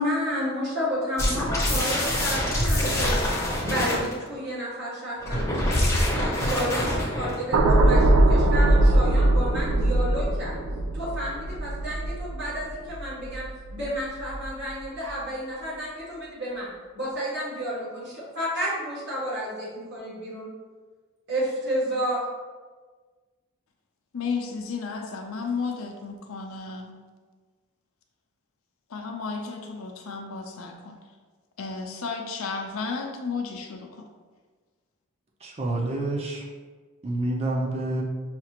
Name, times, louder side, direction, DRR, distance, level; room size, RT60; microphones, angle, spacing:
voice 1, 0.0-3.1 3.6-6.1 6.3-10.6 10.9-20.5 21.3-22.2, equal, 50° right, -8 dB, 1.4 m, -31 dB
sound 1, 1.2-4.1 5.2-7.4, left 1 dB, 15° left, 0.6 m, -25 dB
sound 2, 7.5-13.8 14.2-14.5, right 1 dB, 85° right, 0.5 m, -21 dB
voice 2, 24.1-26.9 28.9-31.0 31.6-34.0, left 4 dB, 70° left, 2 dB, 0.5 m, -33 dB
voice 3, 35.4-36.5 37.0-38.0, right 2 dB, 30° right, -2 dB, 0.6 m, -28 dB
5.7 x 2.4 x 2.9 m, 1.4 s
head